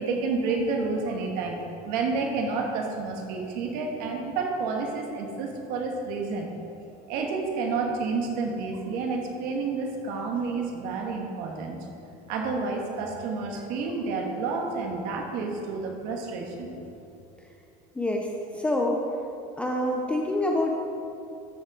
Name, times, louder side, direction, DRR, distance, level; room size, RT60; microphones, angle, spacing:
voice 1, 0.0-6.5 7.1-11.8 12.3-16.7, right 4 dB, 50° right, 2 dB, 1.4 m, -30 dB
voice 2, 18.0-18.3 18.5-19.0 19.6-20.8, left 1 dB, 5° left, 0 dB, 0.4 m, -26 dB
13.0 x 5.3 x 4.8 m, 2.8 s
cardioid pair, 175°, 19 cm